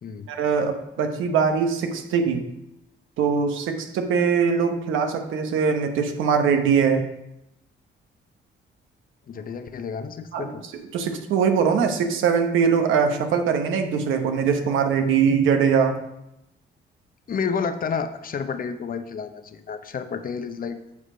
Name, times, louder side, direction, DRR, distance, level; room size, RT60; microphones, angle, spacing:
voice 1, 0.3-2.5 3.2-7.1 10.3-10.5 10.9-16.0, right 6 dB, 85° right, 6 dB, 1.0 m, -22 dB
voice 2, 9.3-10.6 17.3-20.8, left 6 dB, 45° left, 9 dB, 0.7 m, -30 dB
8.5 x 4.8 x 5.0 m, 0.86 s
cardioid pair, 90°, 20 cm